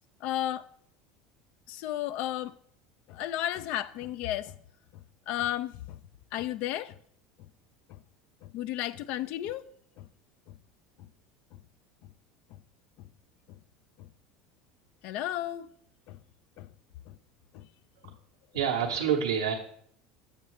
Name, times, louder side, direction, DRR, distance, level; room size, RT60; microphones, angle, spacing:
voice 1, 0.2-0.7 1.7-2.5 3.1-4.5 4.9-6.0 6.3-7.0 7.4-7.5 7.9-8.0 8.4-9.7 10.0-10.1 10.5-10.6 12.0-12.1 12.5-12.6 13.0-13.1 13.5-13.6 14.0-14.1 15.0-15.7 16.1-16.2 16.6-16.7 17.1-17.2 17.5-17.7 18.0-18.1, left 13 dB, 60° left, 0.4 m, -34 dB
voice 2, 18.5-19.5, right 8 dB, 90° right, 0.9 m, -27 dB
7.5 x 6.7 x 3.1 m
hypercardioid pair, 90°, 2 cm